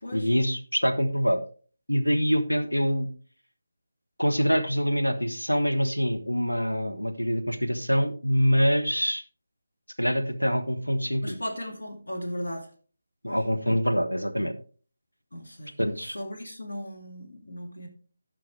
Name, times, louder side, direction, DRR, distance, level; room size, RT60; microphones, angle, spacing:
voice 1, 0.1-1.4 1.9-3.1 4.2-9.2 10.0-11.4 13.2-14.5 15.8-16.1, equal, 85° left, 5 dB, 1.5 m, -25 dB
voice 2, 11.2-12.7 13.3-13.4 15.3-15.7 16.0-17.9, equal, 65° left, 2 dB, 2.3 m, -36 dB
15.5 x 5.7 x 3.3 m, 0.40 s
figure-of-eight pair, 155°, 0 cm